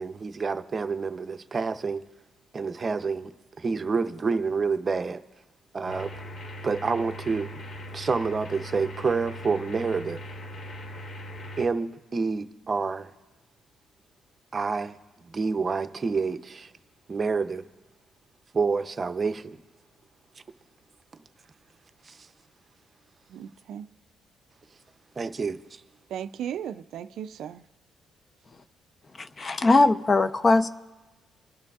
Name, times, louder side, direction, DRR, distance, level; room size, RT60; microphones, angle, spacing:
voice 1, 0.0-2.0 2.5-3.3 3.6-5.2 5.7-6.1 6.6-7.6 7.9-10.2 11.6-13.1 14.5-15.0 15.3-16.7 17.1-17.6 18.5-19.6 22.1-22.2 25.2-25.6, right 4 dB, 35° right, 0.6 m, -28 dB
sound 1, 5.9-11.7, equal, 55° left, 0.9 m, -40 dB
voice 2, 23.3-23.9 26.1-27.6, right 9 dB, 75° right, 0.3 m, -36 dB
voice 3, 29.2-30.7, left 3 dB, 35° left, 0.5 m, -20 dB
28.5 x 10.5 x 2.4 m
cardioid pair, 90°, 0 cm